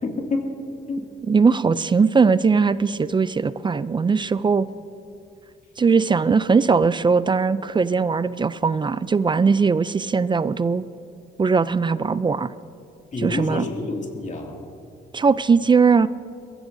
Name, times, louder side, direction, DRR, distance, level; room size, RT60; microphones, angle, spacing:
voice 1, 0.0-0.6 0.9-1.1 1.4-1.6 13.1-14.6, left 3 dB, 40° left, 1 dB, 2.4 m, -28 dB
voice 2, 1.3-4.7 5.8-10.8 11.4-12.5 13.2-13.7 15.1-16.1, right 5 dB, 25° right, 16 dB, 0.4 m, -19 dB
21.5 x 14.5 x 2.7 m, 2.4 s
cardioid pair, 90°, 20 cm